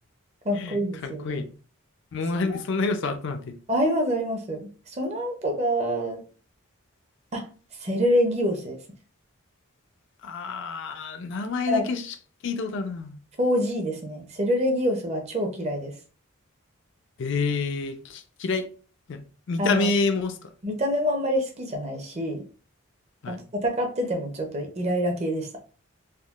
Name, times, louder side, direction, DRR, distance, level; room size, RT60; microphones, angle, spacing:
voice 1, 0.4-1.4 2.4-2.6 3.7-6.2 7.3-7.5 7.8-8.8 11.7-11.8 13.4-15.9 19.6-19.9 20.6-22.4 23.3-25.5, equal, 30° right, 0.6 m, -26 dB
voice 2, 1.0-1.5 2.1-3.6 10.2-12.0 12.4-13.2 17.2-18.7 19.1-19.2 19.5-20.4 23.2-23.4, left 3 dB, 55° left, 0.4 m, -28 dB
3.5 x 2.3 x 2.3 m
head